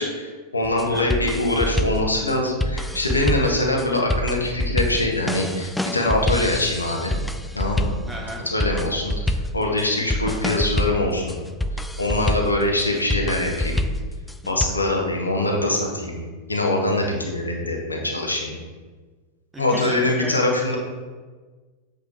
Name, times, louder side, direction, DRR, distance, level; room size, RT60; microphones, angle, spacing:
voice 1, 0.0-7.1 7.5-8.0 8.4-11.4 12.0-13.8 14.4-18.6 19.6-20.8, left 2 dB, 80° left, 0 dB, 1.1 m, -23 dB
sound 1, 0.6-14.7, left 1 dB, 5° left, 0.4 m, -27 dB
voice 2, 8.1-8.4 19.5-20.3 20.7-20.8, right 1 dB, 10° right, -1 dB, 1.8 m, -34 dB
8.2 x 5.1 x 3.3 m, 1.4 s
figure-of-eight pair, 90°, 0 cm